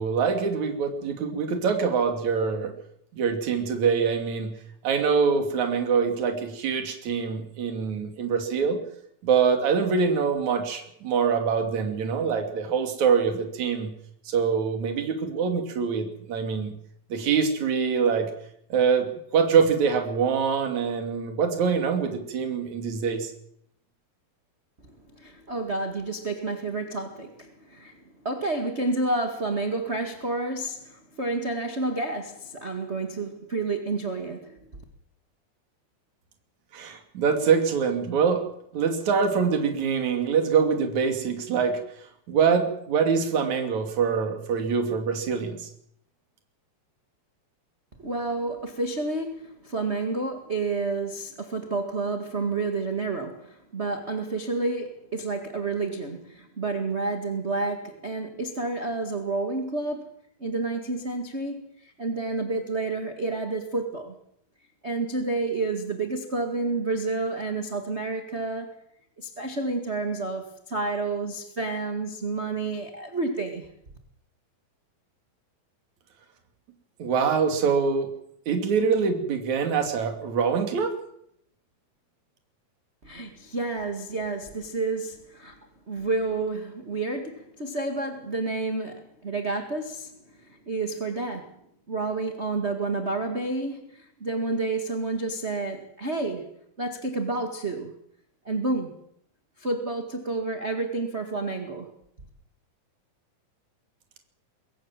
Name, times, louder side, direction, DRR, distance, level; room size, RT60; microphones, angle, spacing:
voice 1, 0.0-2.7 3.1-4.5 4.8-8.8 9.2-13.9 14.3-16.7 17.1-18.3 18.7-23.3 36.7-38.4 38.7-41.8 42.3-45.7 77.0-78.1 78.5-80.9, right 6 dB, 55° right, 5 dB, 3.8 m, -24 dB
voice 2, 25.1-27.9 28.2-34.6 48.0-60.1 60.4-64.2 64.8-68.8 69.2-73.7 83.0-85.5 85.9-90.1 90.7-91.5 91.9-96.5 96.8-97.9 98.4-98.9 99.6-101.9, right 3 dB, 25° right, 4 dB, 1.5 m, -30 dB
22.5 x 17.0 x 7.5 m, 0.72 s
omnidirectional pair, 4.1 m